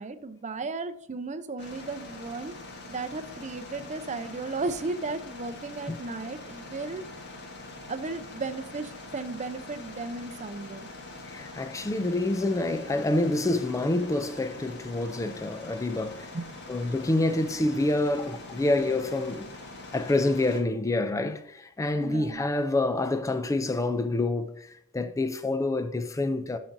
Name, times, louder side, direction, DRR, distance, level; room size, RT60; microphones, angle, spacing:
voice 1, 0.0-2.5 2.9-7.0 7.9-10.9 16.3-16.5 22.0-22.4, right 3 dB, 35° right, 0.6 m, -35 dB
sound 1, 1.6-20.6, left 2 dB, 55° left, 1.3 m, -44 dB
voice 2, 11.2-16.3 16.7-19.5 19.9-26.6, left 2 dB, 15° left, 0.4 m, -27 dB
11.0 x 5.9 x 2.6 m
head